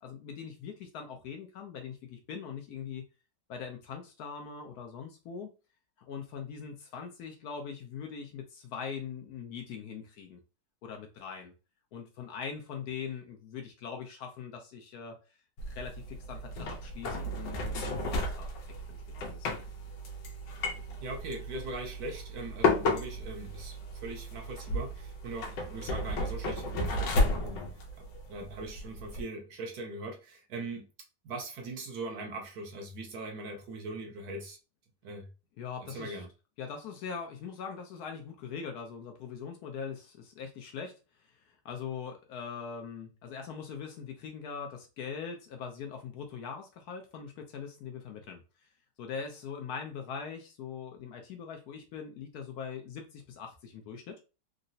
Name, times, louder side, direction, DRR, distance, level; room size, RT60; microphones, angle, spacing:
voice 1, 0.0-3.1 3.5-5.5 6.1-10.4 10.8-11.5 11.9-15.2 15.7-18.5 18.9-19.0 19.3-19.5 35.6-36.2 36.6-41.0 41.4-48.4 49.0-54.2, left 6 dB, 70° left, 1.0 m, -41 dB
sound 1, 15.6-29.2, left 2 dB, 85° left, 1.4 m, -33 dB
voice 2, 21.0-27.7 28.0-30.9 31.2-34.6 35.0-35.3 35.9-36.3, right 2 dB, 70° right, 1.1 m, -41 dB
3.8 x 2.1 x 2.6 m
omnidirectional pair, 1.9 m